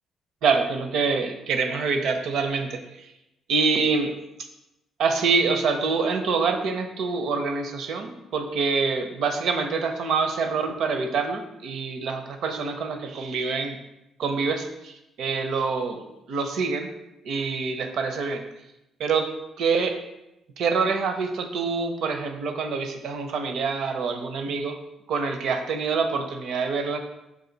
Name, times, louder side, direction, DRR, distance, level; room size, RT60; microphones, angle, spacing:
voice 1, 0.4-3.1 3.5-4.1 5.0-13.8 14.2-16.9 17.2-18.4 19.0-19.3 19.6-20.0 20.6-24.8 25.1-27.0, right 4 dB, 75° right, 6 dB, 0.6 m, -26 dB
5.4 x 2.5 x 3.9 m, 0.91 s
cardioid pair, 90°, 0 cm